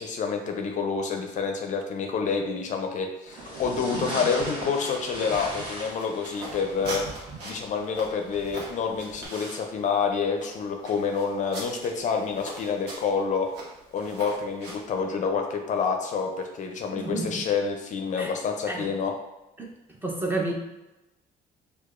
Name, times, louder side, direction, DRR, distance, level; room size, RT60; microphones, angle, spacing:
voice 1, 0.0-13.5 13.9-19.1, left 5 dB, 45° left, 4 dB, 0.4 m, -28 dB
sound 1, 3.3-9.3, right 1 dB, 30° right, 1.2 m, -38 dB
sound 2, 5.3-15.0, right 1 dB, 90° right, 1.1 m, -41 dB
voice 2, 16.9-17.4 18.2-18.3 18.7-18.9 19.6-19.7 20.0-20.5, right 2 dB, 10° right, -1 dB, 0.6 m, -30 dB
4.6 x 2.3 x 2.4 m, 0.98 s
cardioid pair, 110°, 17 cm